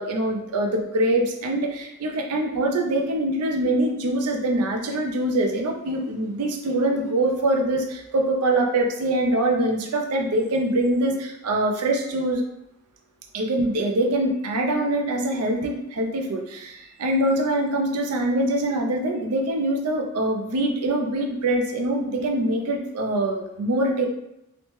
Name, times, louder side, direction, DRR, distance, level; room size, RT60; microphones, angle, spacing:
voice 1, 0.0-12.4 13.3-24.1, right 1 dB, 85° right, 2 dB, 0.5 m, -24 dB
3.0 x 2.1 x 3.1 m, 0.87 s
head